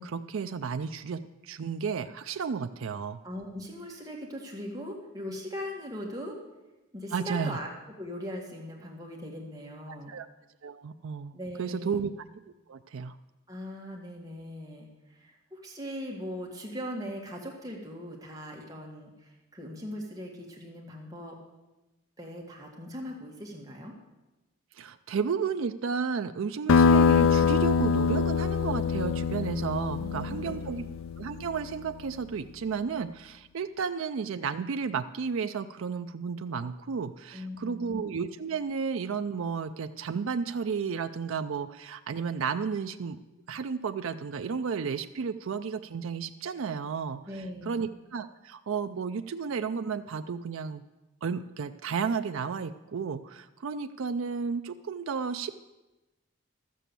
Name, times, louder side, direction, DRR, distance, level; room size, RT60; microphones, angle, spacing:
voice 1, 0.0-3.2 7.1-7.6 9.9-10.3 10.6-12.1 12.7-13.2 24.7-30.8 31.2-43.2 43.5-47.2 47.7-50.8 51.2-55.5, right 5 dB, 70° right, 8 dB, 0.4 m, -33 dB
voice 2, 3.2-6.4 6.9-7.7 8.0-10.1 11.3-12.1 13.5-21.4 22.2-23.9 30.0-30.8 37.3-38.1 47.3-47.9, equal, 15° right, -1 dB, 1.7 m, -40 dB
sound 1, 26.7-31.8, left 5 dB, 75° left, 0.4 m, -24 dB
12.5 x 7.6 x 6.8 m, 1.1 s
head